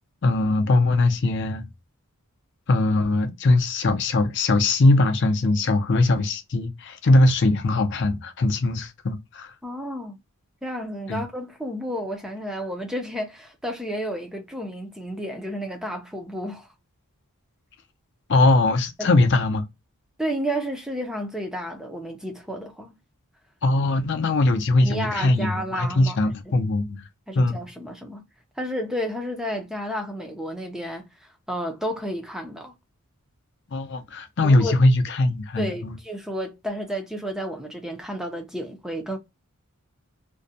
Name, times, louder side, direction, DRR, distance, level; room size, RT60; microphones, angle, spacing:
voice 1, 0.2-1.7 2.7-9.5 11.1-11.2 18.3-19.6 23.6-27.1 27.4-27.7 33.7-35.9, left 2 dB, 50° left, 0.5 m, -21 dB
voice 2, 9.6-10.2 10.6-16.7 19.0-19.1 20.2-22.9 24.8-26.5 27.3-28.2 28.6-32.7 34.4-34.8 35.6-39.2, equal, ahead, 0.4 m, -31 dB
2.5 x 2.1 x 2.6 m
head